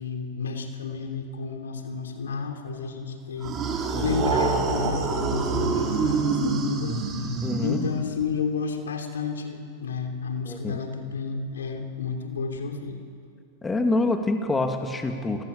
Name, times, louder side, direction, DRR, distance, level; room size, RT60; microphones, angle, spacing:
voice 1, 0.0-3.6 4.0-7.0 7.6-13.0, left 5 dB, 85° left, 4 dB, 3.1 m, -31 dB
Zombie Groan, 3.4-8.2, right 4 dB, 30° right, 5.3 m, -26 dB
voice 2, 3.9-4.3 7.4-7.9 10.5-10.8 13.6-15.4, left 2 dB, 15° left, 5 dB, 2.4 m, -26 dB
29.0 x 21.5 x 7.1 m, 2.4 s
hypercardioid pair, 100°, 0 cm